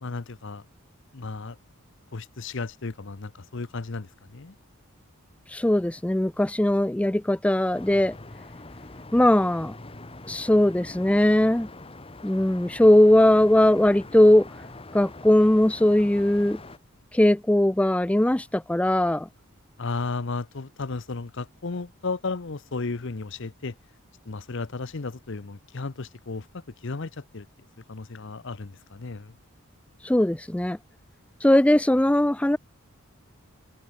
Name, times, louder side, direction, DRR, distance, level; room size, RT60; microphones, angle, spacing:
voice 1, 0.0-0.6 1.1-1.6 2.1-4.5 19.8-23.7 24.3-27.5 27.9-29.3, left 3 dB, 55° left, 0.8 m, -34 dB
voice 2, 5.5-8.1 9.1-9.7 10.3-11.7 12.2-14.5 14.9-16.6 17.1-19.3 30.0-30.8 31.4-32.6, left 1 dB, 5° left, 0.4 m, -20 dB
sound 1, 7.7-16.8, left 2 dB, 25° left, 1.5 m, -43 dB
head